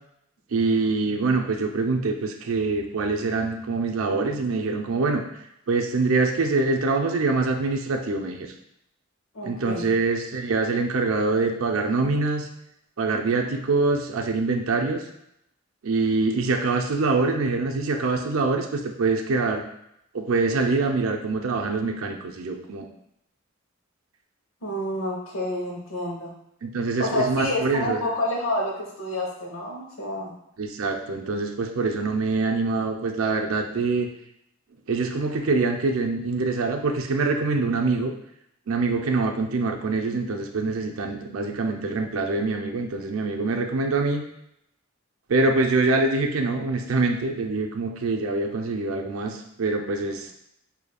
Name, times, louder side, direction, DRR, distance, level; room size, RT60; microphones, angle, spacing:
voice 1, 0.5-5.2 5.7-8.5 9.4-12.5 13.0-15.0 15.8-19.6 20.1-22.9 26.6-28.1 30.6-34.1 34.9-38.1 38.7-44.2 45.3-50.3, right 3 dB, 85° right, 3 dB, 0.5 m, -24 dB
voice 2, 9.3-9.9 24.6-26.3 27.0-30.3, left 1 dB, 85° left, -2 dB, 1.0 m, -28 dB
5.0 x 2.7 x 2.3 m, 0.77 s
head